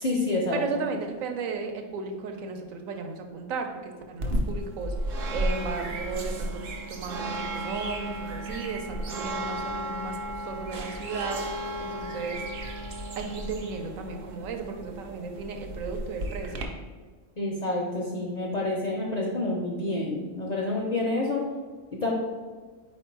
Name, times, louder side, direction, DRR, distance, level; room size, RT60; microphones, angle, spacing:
voice 1, 0.0-0.8 17.4-21.4 22.0-22.1, left 2 dB, 55° left, -3 dB, 0.4 m, -28 dB
voice 2, 0.5-4.9 5.3-11.4 11.9-12.4 13.2-16.7, right 4 dB, 80° right, 4 dB, 1.0 m, -35 dB
sound 1, 4.2-16.6, right 1 dB, 55° right, 0.6 m, -33 dB
4.4 x 2.6 x 4.5 m, 1.4 s
omnidirectional pair, 1.4 m